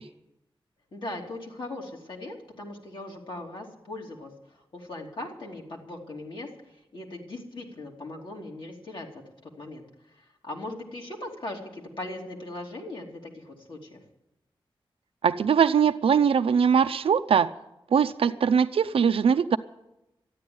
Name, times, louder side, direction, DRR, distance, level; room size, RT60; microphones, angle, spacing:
voice 1, 0.9-6.5 6.9-9.8 10.2-14.0, left 2 dB, 60° left, -1 dB, 2.8 m, -39 dB
voice 2, 15.2-17.5 17.9-19.6, right 7 dB, 85° right, 8 dB, 0.5 m, -21 dB
13.0 x 10.0 x 9.4 m, 0.90 s
wide cardioid pair, 125°, 9 cm